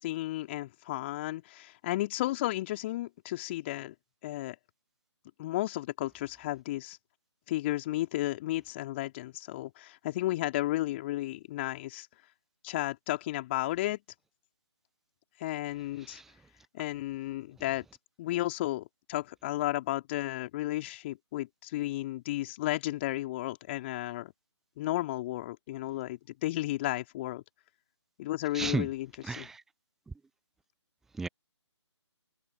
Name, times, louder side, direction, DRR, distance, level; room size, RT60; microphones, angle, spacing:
voice 1, 0.0-3.9 4.2-4.5 5.4-7.0 7.5-12.1 12.6-14.0 15.4-16.2 16.7-17.8 18.2-24.3 24.8-27.4 28.2-29.5, left 16 dB, 25° left, 3.2 m, -33 dB
voice 2, 28.5-28.9 29.2-29.6 31.1-31.3, right 4 dB, ahead, 0.6 m, -33 dB
figure-of-eight pair, 145°, 15 cm